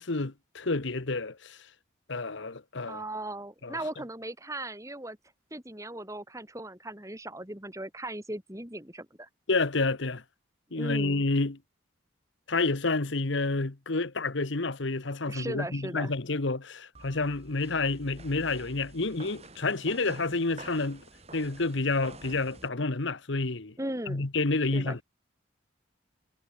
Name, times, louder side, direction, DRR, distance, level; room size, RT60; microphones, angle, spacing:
voice 1, 0.0-1.6 2.1-3.0 3.6-3.7 9.5-10.2 10.7-11.6 12.5-21.0 21.3-23.7 24.1-25.0, left 3 dB, 65° left, 1.2 m, -29 dB
voice 2, 2.9-5.2 5.5-9.3 10.7-11.2 15.3-16.1 23.8-24.2 24.6-25.0, right 1 dB, 15° right, 3.6 m, -38 dB
sound 1, 17.0-22.7, right 2 dB, 30° right, 6.2 m, -49 dB
head